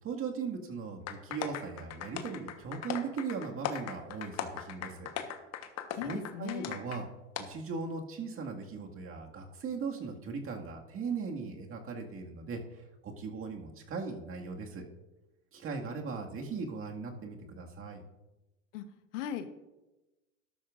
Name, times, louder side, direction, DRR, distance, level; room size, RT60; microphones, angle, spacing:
voice 1, 0.0-5.1 5.9-7.1 7.4-14.8 15.5-18.0, right 5 dB, 35° right, 2 dB, 1.9 m, -38 dB
sound 1, 1.1-7.0 7.3-7.4, left 9 dB, 45° left, 1.2 m, -39 dB
voice 2, 6.0-6.8 18.7-18.8 19.1-19.5, left 10 dB, 75° left, 10 dB, 1.1 m, -38 dB
13.0 x 12.0 x 2.5 m, 1.0 s
hypercardioid pair, 90°, 37 cm